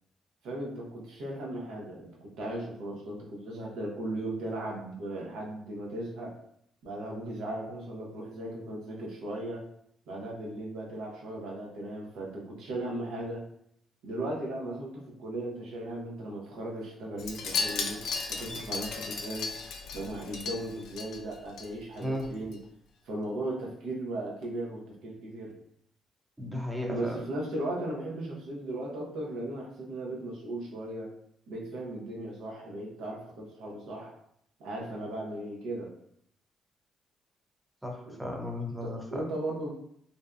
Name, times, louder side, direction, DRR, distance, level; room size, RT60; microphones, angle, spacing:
voice 1, 0.4-6.4 6.8-9.7 10.1-13.4 14.0-19.5 19.9-22.6 23.0-25.5 26.9-31.1 31.5-34.2 34.6-35.9 38.1-38.2 38.8-39.7, right 1 dB, 85° right, -2 dB, 0.6 m, -37 dB
Wind chime, 17.2-21.7 22.0-22.3 22.5-22.6, left 4 dB, 80° left, 0.3 m, -35 dB
voice 2, 26.4-27.2 37.8-39.2, left 1 dB, 10° right, 1 dB, 0.6 m, -35 dB
2.5 x 2.2 x 2.4 m, 0.71 s
cardioid pair, 90°, 0 cm